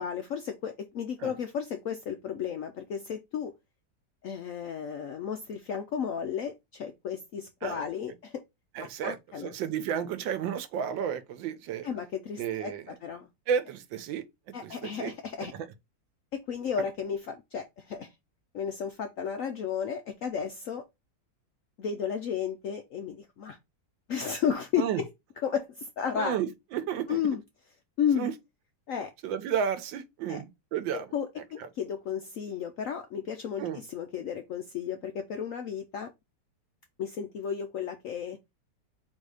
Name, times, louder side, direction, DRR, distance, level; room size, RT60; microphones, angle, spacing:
voice 1, 0.0-3.5 4.2-8.4 8.8-9.5 11.8-13.3 14.5-15.5 16.3-18.1 18.5-20.8 21.8-23.6 24.1-25.1 25.4-26.4 27.1-27.4 28.0-28.3 28.9-29.1 30.3-30.4 31.1-36.1 37.0-38.4, left 7 dB, 75° left, 0.7 m, -33 dB
voice 2, 8.7-11.9 12.4-13.0 13.5-14.2 14.6-15.7 24.8-25.0 26.2-27.2 28.2-28.3 29.2-31.1 31.6-31.7 33.6-33.8, right 8 dB, 85° right, 1.4 m, -32 dB
4.0 x 2.7 x 4.7 m
omnidirectional pair, 2.0 m